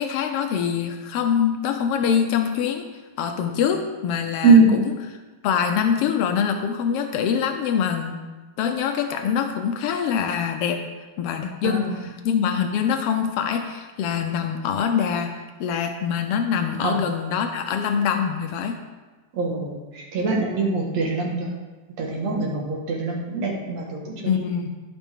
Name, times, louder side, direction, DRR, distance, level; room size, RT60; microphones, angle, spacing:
voice 1, 0.0-2.9 3.2-4.9 5.4-8.2 8.6-10.8 11.2-18.8 24.3-24.7, left 7 dB, 85° left, 5 dB, 1.3 m, -24 dB
voice 2, 4.4-4.8 11.6-12.1 16.8-17.0 19.3-21.5 22.0-24.5, right 3 dB, 65° right, -2 dB, 2.8 m, -22 dB
15.0 x 5.9 x 3.7 m, 1.3 s
omnidirectional pair, 3.4 m